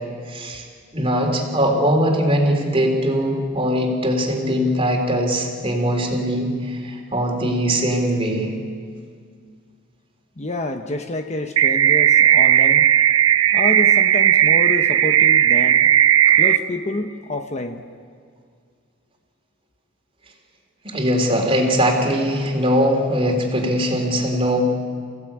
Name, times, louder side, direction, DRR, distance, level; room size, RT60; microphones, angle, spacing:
voice 1, 0.3-0.6 0.9-8.5 16.3-16.4 20.8-24.7, equal, 25° right, 2 dB, 3.6 m, -21 dB
voice 2, 10.4-12.9 13.5-15.8 16.4-17.8, left 2 dB, 35° left, 5 dB, 1.1 m, -28 dB
sound 1, 11.6-16.6, right 10 dB, 80° right, 0.7 m, -15 dB
29.0 x 16.0 x 8.9 m, 2.1 s
head